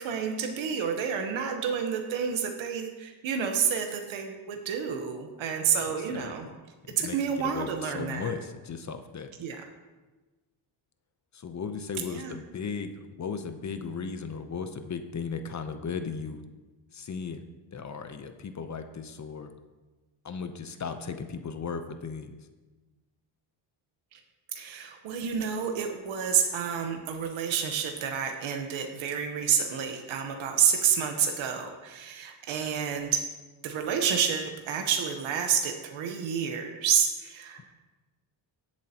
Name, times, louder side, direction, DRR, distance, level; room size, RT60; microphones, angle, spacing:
voice 1, 0.0-6.5 7.0-8.3 9.4-9.6 12.1-12.4 24.1-24.2 24.5-33.2 33.6-37.6, right 7 dB, 80° right, 4 dB, 1.2 m, -29 dB
voice 2, 5.8-6.6 6.9-9.3 11.3-12.9 13.2-16.4 16.9-17.5 17.7-19.5 20.2-22.3, left 5 dB, 35° left, 8 dB, 0.8 m, -36 dB
17.5 x 7.5 x 2.9 m, 1.2 s
cardioid pair, 105°, 47 cm